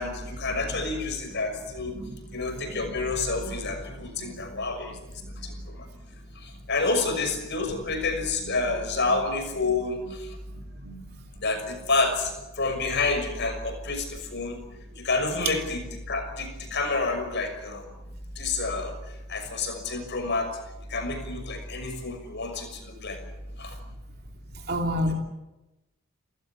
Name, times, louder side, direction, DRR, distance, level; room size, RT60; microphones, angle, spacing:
voice 1, 0.0-1.9 2.3-5.0 5.4-5.9 6.4-10.4 11.4-14.6 15.0-17.8 18.4-18.9 19.3-20.5 20.9-23.2 23.6-23.8, left 3 dB, 55° left, 6.1 m, -29 dB
voice 2, 24.7-25.1, equal, 50° right, 3.0 m, -28 dB
29.5 x 16.0 x 8.7 m
head